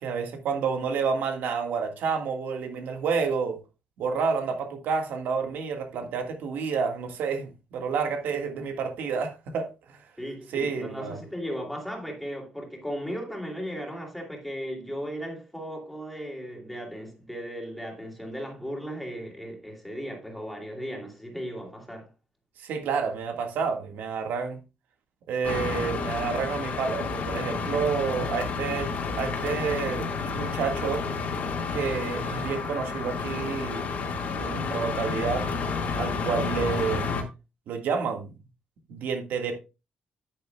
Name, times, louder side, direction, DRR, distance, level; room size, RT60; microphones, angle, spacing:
voice 1, 0.0-3.6 4.0-10.0 10.5-11.2 22.6-24.6 25.3-28.9 29.2-31.0 31.7-33.9 34.4-35.4 36.0-37.1 37.7-38.3 38.9-39.6, right 5 dB, 90° right, 1.7 m, -29 dB
voice 2, 10.2-22.1, equal, ahead, 2.6 m, -36 dB
sound 1, 25.4-37.2, left 4 dB, 55° left, 1.8 m, -30 dB
10.0 x 9.5 x 2.3 m
cardioid pair, 160°, 3 cm